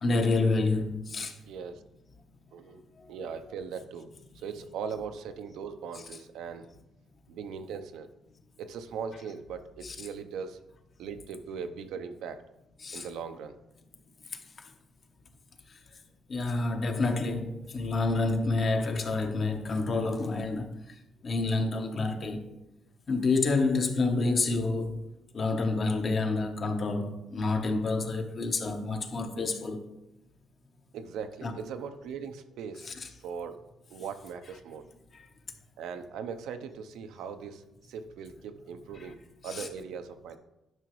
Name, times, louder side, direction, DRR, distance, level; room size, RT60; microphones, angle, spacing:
voice 1, 0.0-1.4 3.0-3.1 9.8-9.9 12.8-13.1 16.3-20.8 21.2-22.6 23.1-25.1 25.3-29.8 31.4-31.6 32.8-33.1 35.1-35.2 39.4-39.7, left 3 dB, 45° left, 1.0 m, -28 dB
voice 2, 1.4-1.8 2.5-2.8 3.1-6.7 7.3-8.1 8.6-10.6 11.0-12.4 12.9-13.6 30.9-32.9 33.2-33.6 33.9-34.9 35.8-40.4, right 6 dB, 85° right, 0.6 m, -39 dB
11.0 x 5.8 x 3.1 m
cardioid pair, 90°, 0 cm